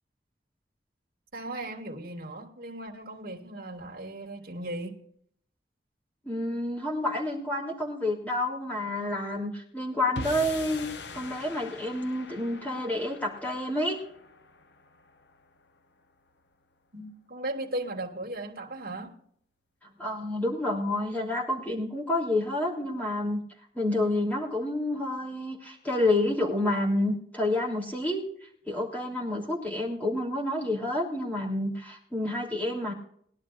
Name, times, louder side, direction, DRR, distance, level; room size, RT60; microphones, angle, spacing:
voice 1, 1.3-5.0 16.9-19.2, right 1 dB, 55° right, 2.3 m, -37 dB
voice 2, 6.2-10.9 11.1-14.0 20.0-23.4 23.7-32.9, left 1 dB, 10° left, 3.2 m, -29 dB
sound 1, 10.2-16.5, left 3 dB, 75° left, 0.9 m, -43 dB
21.5 x 11.5 x 2.6 m
head